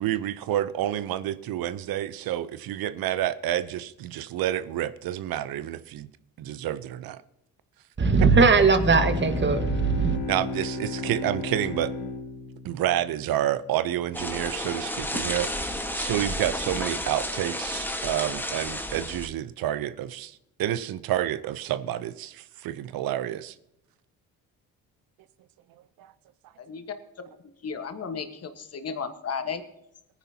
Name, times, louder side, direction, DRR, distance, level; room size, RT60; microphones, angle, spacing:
voice 1, 0.0-6.1 6.4-7.2 10.3-11.9 12.6-23.5 26.0-26.1, right 12 dB, 70° right, 0.8 m, -29 dB
voice 2, 8.0-10.2, right 4 dB, 30° right, 1.5 m, -19 dB
Bowed string instrument, 8.7-13.7, left 3 dB, 90° left, 1.6 m, -35 dB
sound 1, 14.1-19.3, left 1 dB, 5° left, 1.4 m, -31 dB
voice 3, 27.6-29.6, left 5 dB, 40° left, 1.4 m, -34 dB
18.5 x 10.0 x 2.8 m
supercardioid pair, 70°, 37 cm